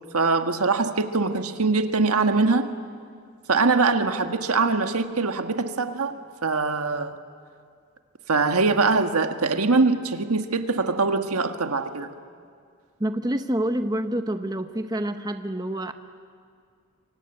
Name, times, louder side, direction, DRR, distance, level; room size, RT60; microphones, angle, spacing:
voice 1, 0.1-2.7 3.5-7.2 8.3-12.1, right 3 dB, 80° right, 7 dB, 1.5 m, -23 dB
voice 2, 13.0-15.9, right 1 dB, 15° right, 8 dB, 0.8 m, -27 dB
27.0 x 24.5 x 9.1 m, 2.2 s
head